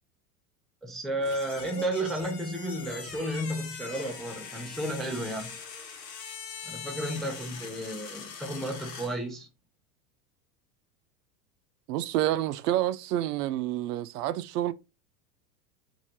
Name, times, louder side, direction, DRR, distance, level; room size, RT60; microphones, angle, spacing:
voice 1, 0.8-5.5 6.6-9.5, right 1 dB, ahead, 0.4 m, -33 dB
sound 1, 1.2-9.2, left 6 dB, 85° left, 1.0 m, -42 dB
voice 2, 11.9-14.7, right 13 dB, 70° right, 0.5 m, -28 dB
3.2 x 2.6 x 2.7 m
hypercardioid pair, 95°, 48 cm